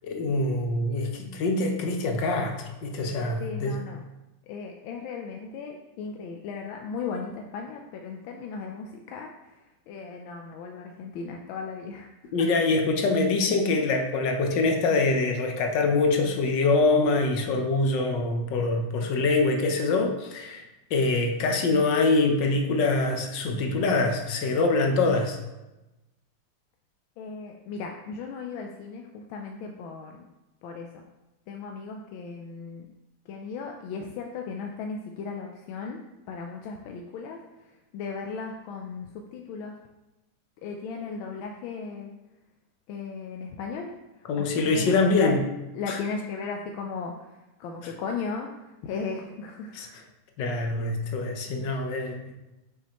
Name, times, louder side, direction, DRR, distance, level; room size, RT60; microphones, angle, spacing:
voice 1, 0.0-3.7 12.3-20.6 20.9-25.4 44.3-45.4 45.9-46.0 47.8-47.9 49.7-50.0 50.4-52.3, left 3 dB, 70° left, 3 dB, 1.3 m, -24 dB
voice 2, 3.4-4.0 4.5-12.1 12.4-12.5 27.2-30.2 30.6-31.0 31.5-32.9 33.3-36.0 36.3-37.4 37.9-39.8 40.6-42.1 42.9-43.9 44.4-45.5 45.7-50.0 51.0-51.2, left 5 dB, 90° left, 2 dB, 1.4 m, -36 dB
6.5 x 5.7 x 2.9 m, 1.0 s
omnidirectional pair, 2.1 m